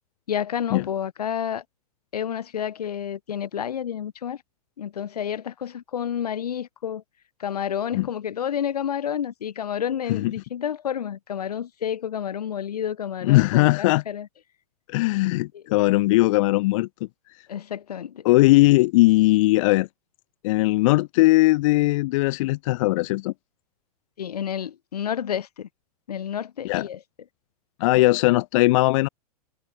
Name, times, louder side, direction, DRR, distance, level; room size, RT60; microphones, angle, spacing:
voice 1, 0.3-1.6 2.1-4.4 4.8-7.0 7.4-14.3 15.5-15.6 17.5-18.3 24.2-25.7 26.1-27.0, left 9 dB, 80° left, 1.6 m, -30 dB
voice 2, 13.2-14.0 14.9-16.9 18.2-19.9 20.4-23.3 26.6-26.9 27.8-29.1, left 20 dB, 55° left, 0.7 m, -19 dB
hypercardioid pair, 110°, 20 cm